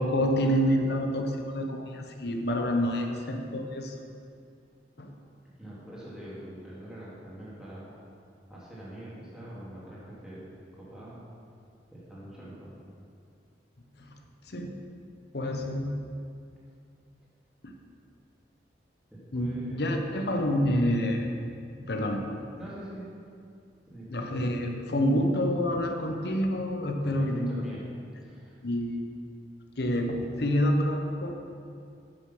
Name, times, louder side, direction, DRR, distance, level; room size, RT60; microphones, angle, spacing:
voice 1, 0.0-4.0 5.0-5.1 14.0-14.1 14.4-14.8 15.3-16.0 17.6-17.7 19.3-21.3 21.9-22.2 24.1-27.7 28.6-29.1 29.8-31.3, equal, 65° left, 4 dB, 1.0 m, -28 dB
voice 2, 5.6-7.9 8.5-10.4 10.7-11.2 11.9-12.7 19.1-19.9 21.8-21.9 22.6-23.1 23.9-24.1 27.0-27.8 28.2-28.6, right 1 dB, 5° right, -9 dB, 2.5 m, -44 dB
8.2 x 7.0 x 6.0 m, 2.4 s
head